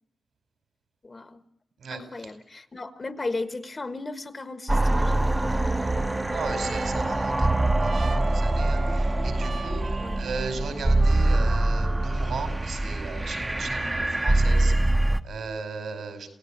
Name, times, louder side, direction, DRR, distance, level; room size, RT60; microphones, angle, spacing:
voice 1, 1.0-1.4 1.9-5.3 5.6-6.2 10.0-10.3, left 3 dB, 30° left, 1.5 m, -36 dB
sound 1, 4.7-15.2, right 2 dB, 15° right, 1.1 m, -24 dB
Trumpet, 5.7-12.5, right 4 dB, 55° right, 1.7 m, -42 dB
voice 2, 6.3-16.3, right 4 dB, 80° right, 5.1 m, -36 dB
28.0 x 17.0 x 8.8 m
wide cardioid pair, 100°, 0 cm